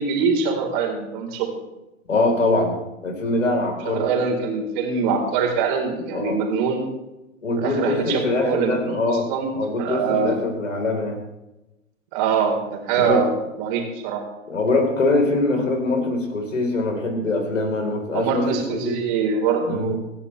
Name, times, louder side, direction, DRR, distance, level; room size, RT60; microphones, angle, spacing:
voice 1, 0.0-1.5 3.8-6.8 7.6-10.4 12.1-13.3 13.6-14.2 18.1-20.0, right 6 dB, 40° right, 2 dB, 4.1 m, -24 dB
voice 2, 2.1-2.8 3.0-4.1 6.1-6.4 7.4-11.2 13.0-13.2 14.5-19.0 19.6-19.9, left 2 dB, 70° left, 3 dB, 4.3 m, -23 dB
26.5 x 11.0 x 3.4 m, 0.96 s
figure-of-eight pair, 110°, 39 cm